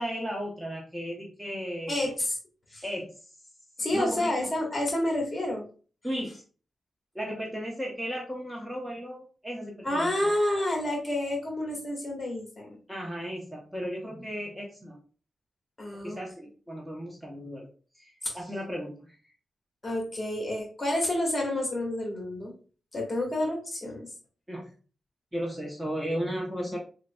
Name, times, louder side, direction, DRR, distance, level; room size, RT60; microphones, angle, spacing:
voice 1, 0.0-2.1 2.8-3.1 3.9-4.3 6.0-6.4 7.1-10.3 12.9-15.0 15.9-17.7 17.9-18.1 18.3-19.2 24.5-24.7 25.3-26.8, equal, 10° right, -1 dB, 0.9 m, -35 dB
voice 2, 1.9-2.4 2.7-2.8 3.8-5.6 9.8-12.8 15.8-16.2 18.2-18.4 19.8-22.5 22.9-24.1, left 1 dB, 25° left, 0 dB, 1.5 m, -29 dB
3.9 x 3.6 x 2.3 m, 0.38 s
cardioid pair, 95°, 0 cm